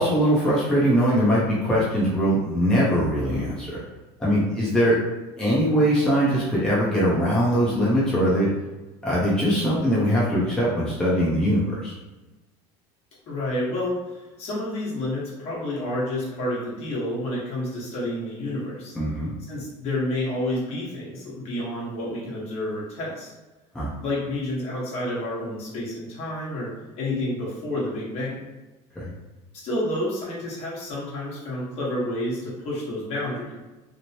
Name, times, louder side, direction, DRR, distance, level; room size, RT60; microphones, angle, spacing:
voice 1, 0.0-3.8 4.2-5.0 5.4-8.5 9.0-11.9 18.9-19.3 23.7-23.9 29.0-29.1, equal, 5° left, -8 dB, 0.6 m, -21 dB
voice 2, 13.3-19.0 19.5-23.3 24.0-26.7 26.9-28.5 29.5-33.5, left 1 dB, 50° left, -6 dB, 1.2 m, -29 dB
3.1 x 2.0 x 2.7 m, 1.1 s
cardioid pair, 135°, 13 cm